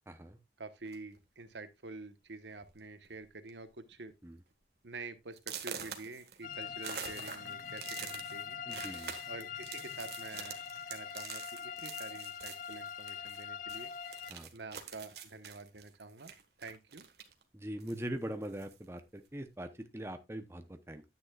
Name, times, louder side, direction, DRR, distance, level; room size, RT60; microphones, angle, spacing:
voice 1, 0.1-0.4 4.2-4.4 8.7-9.1 14.3-14.5 17.5-21.0, right 1 dB, 15° right, 0.8 m, -42 dB
voice 2, 0.6-4.1 4.8-8.6 9.3-10.6 10.9-13.9 14.5-16.3 16.6-17.1, right 3 dB, 85° right, 1.2 m, -48 dB
sound 1, 0.8-1.2 2.0-2.1 2.5-2.7 3.0-3.5 3.9-4.0 4.5-4.6 5.4-13.4 13.7-17.4 17.8-18.8, right 7 dB, 65° right, 1.5 m, -46 dB
sound 2, 6.4-14.3, left 8 dB, 45° left, 0.5 m, -43 dB
10.5 x 9.6 x 2.4 m
head